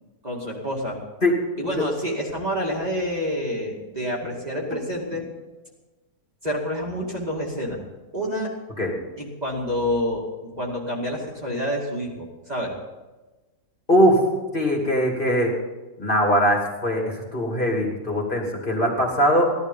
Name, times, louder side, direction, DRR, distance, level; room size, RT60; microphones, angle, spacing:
voice 1, 0.2-1.0 1.6-5.2 6.4-7.8 8.1-8.5 9.2-12.8, equal, 25° right, -3 dB, 2.4 m, -28 dB
voice 2, 13.9-14.2 14.5-15.5 16.0-19.5, equal, 35° left, -1 dB, 2.8 m, -21 dB
16.5 x 12.5 x 5.5 m, 1.2 s
omnidirectional pair, 1.6 m